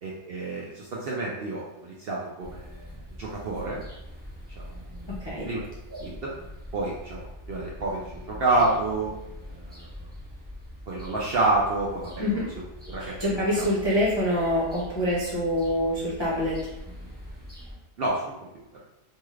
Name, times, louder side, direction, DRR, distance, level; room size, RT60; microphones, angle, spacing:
voice 1, 0.0-3.8 4.6-4.8 5.5-5.6 5.9-6.3 6.7-9.1 9.5-9.9 10.9-12.1 12.9-13.7 18.0-18.5, right 2 dB, 65° right, -5 dB, 0.6 m, -29 dB
sound 1, 2.4-17.8, equal, 10° right, 0.8 m, -43 dB
voice 2, 13.0-16.6, left 1 dB, 35° left, -8 dB, 0.4 m, -25 dB
2.7 x 2.3 x 3.1 m, 0.90 s
omnidirectional pair, 1.4 m